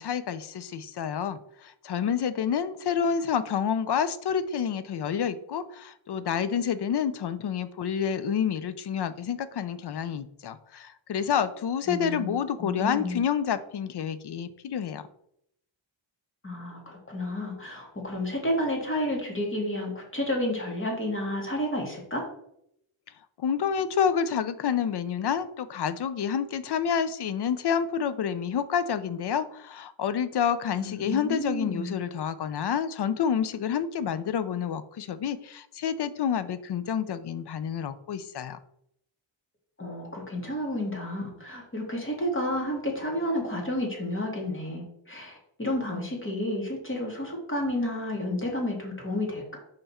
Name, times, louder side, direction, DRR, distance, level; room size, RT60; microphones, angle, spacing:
voice 1, 0.0-15.1 23.4-38.6, left 7 dB, 60° left, 13 dB, 0.5 m, -28 dB
voice 2, 11.9-13.2 16.4-22.3 30.8-32.0 39.8-49.6, left 1 dB, 25° left, 0 dB, 2.0 m, -31 dB
5.6 x 5.2 x 4.2 m, 0.75 s
wide cardioid pair, 125°, 47 cm